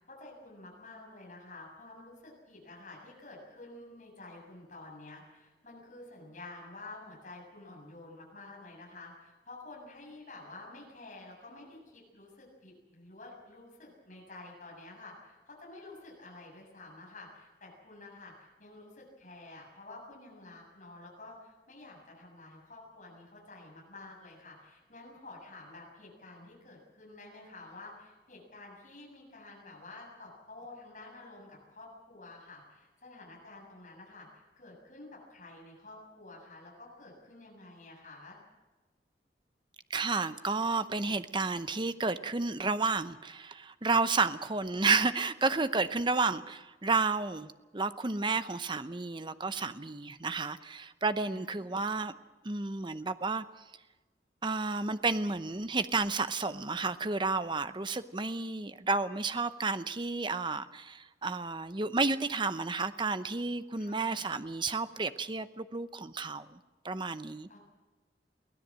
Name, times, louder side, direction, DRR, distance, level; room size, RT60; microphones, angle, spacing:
voice 1, 0.0-38.4 51.3-51.8 63.8-64.3 67.5-67.6, left 2 dB, 45° left, -2 dB, 7.5 m, -50 dB
voice 2, 39.9-52.1 52.4-53.4 54.4-66.6 66.8-67.6, right 3 dB, 25° right, 12 dB, 0.7 m, -31 dB
23.5 x 17.0 x 7.5 m, 1.2 s
head